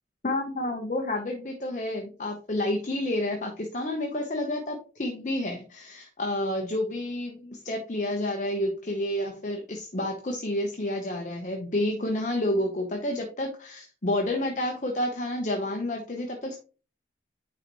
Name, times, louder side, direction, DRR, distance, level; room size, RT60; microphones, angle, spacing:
voice 1, 0.2-16.6, left 1 dB, 40° left, 2 dB, 0.9 m, -30 dB
9.6 x 4.0 x 3.0 m, 0.35 s
head